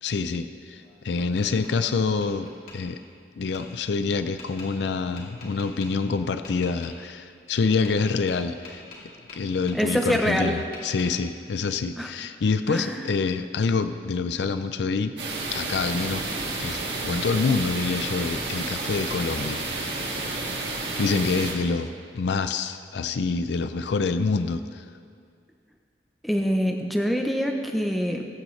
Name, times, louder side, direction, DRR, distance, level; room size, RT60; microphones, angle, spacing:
voice 1, 0.0-3.0 3.4-8.8 9.3-15.1 15.5-16.2 16.6-20.0 20.7-21.9 22.1-24.9, left 4 dB, 70° left, 10 dB, 0.4 m, -26 dB
Tap, 0.7-1.7 2.2-2.8 3.5-3.6 4.4-4.7 5.2-5.9 6.4-6.9 7.6-8.0 8.3-10.1 10.4-11.1, left 3 dB, 50° left, 2.9 m, -44 dB
voice 2, 9.7-10.6 12.0-12.1 12.7-13.0 26.2-28.3, equal, ahead, 2 dB, 0.6 m, -25 dB
sound 1, 15.2-21.5, right 3 dB, 65° right, 2.1 m, -31 dB
20.5 x 9.0 x 3.2 m, 2.2 s
head